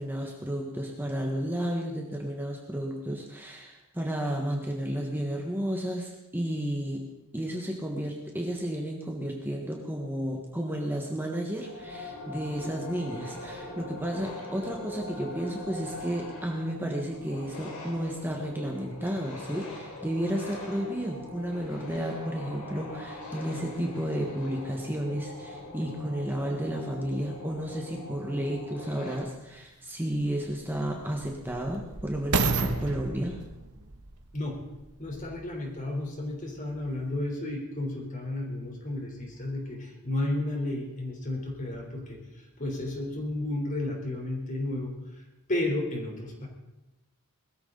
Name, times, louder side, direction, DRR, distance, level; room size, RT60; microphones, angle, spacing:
voice 1, 0.0-33.4, equal, 10° right, 0 dB, 1.4 m, -32 dB
sound 1, 11.5-29.2, left 1 dB, 85° left, 4.5 m, -42 dB
sound 2, 29.3-29.4 30.1-35.4 36.1-36.2, right 4 dB, 85° right, 1.3 m, -32 dB
voice 2, 35.0-46.5, left 1 dB, 35° left, 1 dB, 3.7 m, -33 dB
21.0 x 14.0 x 3.9 m, 0.98 s
head